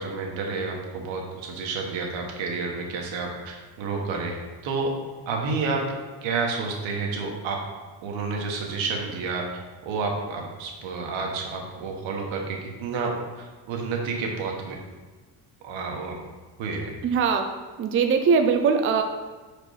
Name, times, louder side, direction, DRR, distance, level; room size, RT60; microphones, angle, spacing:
voice 1, 0.0-4.3 4.6-4.9 5.2-7.6 8.0-9.4 9.8-14.8 15.6-16.2 16.6-17.0, right 4 dB, 80° right, 1 dB, 1.5 m, -30 dB
voice 2, 17.0-17.5 17.8-19.0, right 5 dB, 30° right, 6 dB, 0.4 m, -21 dB
5.5 x 5.0 x 4.8 m, 1.3 s
cardioid pair, 150°, 45 cm